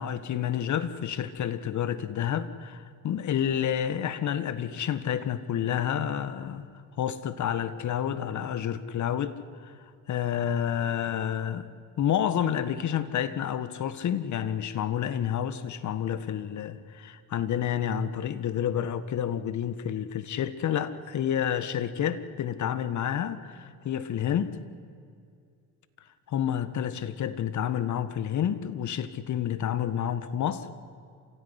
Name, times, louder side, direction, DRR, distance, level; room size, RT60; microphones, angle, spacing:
voice 1, 0.0-6.7 7.0-9.7 10.1-11.7 12.0-24.6 26.3-30.7, left 9 dB, 50° left, 1.7 m, -29 dB
28.0 x 16.5 x 10.0 m
supercardioid pair, 80°, 38 cm